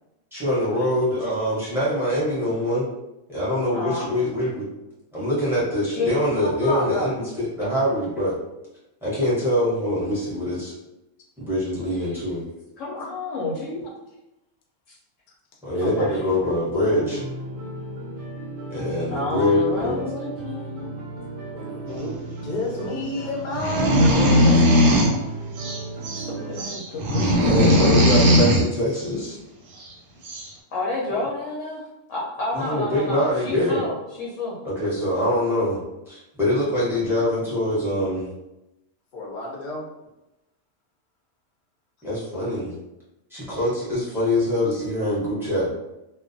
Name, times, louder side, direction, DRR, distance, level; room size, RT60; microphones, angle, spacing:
voice 1, 0.3-2.9 3.3-4.6 5.1-8.4 9.0-10.7 11.4-12.4 15.6-17.2 18.7-20.0 27.4-29.4 32.5-33.8 34.6-35.8 36.1-38.3 42.0-42.7 43.3-45.7, left 1 dB, ahead, -9 dB, 0.7 m, -24 dB
voice 2, 3.7-4.2 5.9-6.1 6.4-7.1 12.0-12.2 12.8-13.8 15.8-16.2 19.1-21.0 24.4-25.2 26.0-28.0 30.7-34.6, left 2 dB, 75° left, -5 dB, 0.9 m, -30 dB
sound 1, 16.9-26.6, right 2 dB, 55° right, 0.6 m, -35 dB
voice 3, 21.5-22.1 22.4-24.6 24.9-25.0 39.1-39.9, left 2 dB, 50° left, -2 dB, 0.6 m, -31 dB
sound 2, 23.5-25.2 25.6-26.3 26.6-28.6 29.8-29.9 30.2-30.5, equal, 90° right, 1.0 m, -18 dB
2.3 x 2.1 x 2.5 m, 0.93 s
omnidirectional pair, 1.3 m